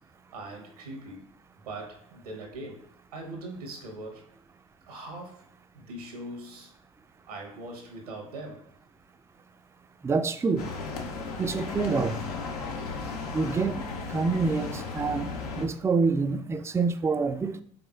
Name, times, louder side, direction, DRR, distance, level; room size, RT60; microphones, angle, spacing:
voice 1, 0.3-1.2 1.6-2.8 3.1-4.5 4.9-5.4 5.7-6.7 7.3-8.6, right 2 dB, 85° right, 2 dB, 1.0 m, -41 dB
voice 2, 10.0-10.7 11.4-12.2 13.3-13.8 14.1-15.3 15.6-17.6, right 4 dB, 15° right, 10 dB, 0.3 m, -26 dB
sound 1, 10.6-15.7, left 4 dB, 80° left, 0.6 m, -35 dB
5.1 x 3.5 x 2.3 m, 0.63 s
hypercardioid pair, 60°, 19 cm